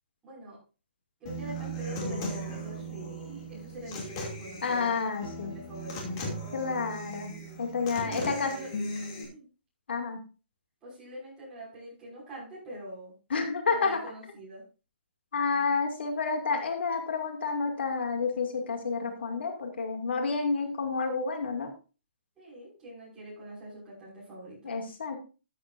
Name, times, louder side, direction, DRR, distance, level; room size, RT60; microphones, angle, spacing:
voice 1, 0.2-0.6 1.2-6.2 8.0-8.7 9.1-9.5 10.8-13.1 13.7-14.6 22.4-24.8, right 1 dB, 10° right, -7 dB, 6.0 m, -44 dB
Human voice / Acoustic guitar, 1.3-9.2, right 1 dB, 30° left, 2.7 m, -37 dB
voice 2, 4.6-5.5 6.5-7.3 7.6-8.5 9.9-10.2 13.3-14.0 15.3-21.7 24.6-25.2, left 4 dB, 75° left, 4 dB, 2.5 m, -29 dB
13.5 x 8.5 x 2.6 m, 0.33 s
hypercardioid pair, 170°, 6 cm